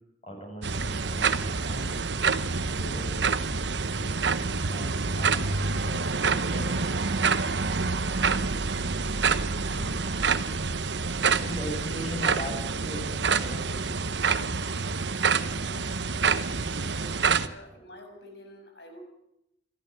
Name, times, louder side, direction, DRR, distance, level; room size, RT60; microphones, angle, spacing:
voice 1, 0.2-1.4 1.6-2.0 2.7-3.6 3.8-4.2 4.7-6.7 9.7-10.0 11.3-14.0, equal, 35° left, 3 dB, 7.1 m, -40 dB
sound 1, 0.6-17.5, right 5 dB, 85° right, 1.1 m, -27 dB
voice 2, 9.7-10.2 15.5-16.2 16.9-19.0, left 1 dB, 70° left, 4 dB, 7.1 m, -49 dB
26.5 x 13.5 x 9.2 m, 0.84 s
head